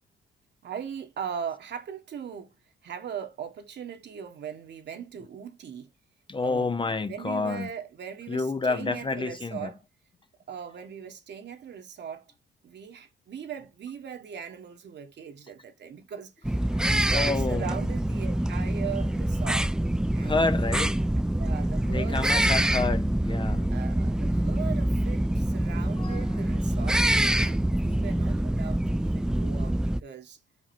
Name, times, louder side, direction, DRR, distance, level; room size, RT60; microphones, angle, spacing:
voice 1, 0.6-5.9 6.4-9.8 10.5-12.2 12.6-19.7 20.1-20.7 21.3-22.6 23.7-27.0 27.4-30.4, right 8 dB, 60° right, 1.5 m, -39 dB
voice 2, 6.3-7.7 8.3-9.7 16.7-17.8 20.2-21.0 21.9-23.7 26.0-26.2, left 3 dB, 25° left, 0.7 m, -29 dB
sound 1, 16.4-30.0, right 1 dB, 5° right, 0.3 m, -25 dB
5.7 x 5.1 x 4.4 m
cardioid pair, 90°, 20 cm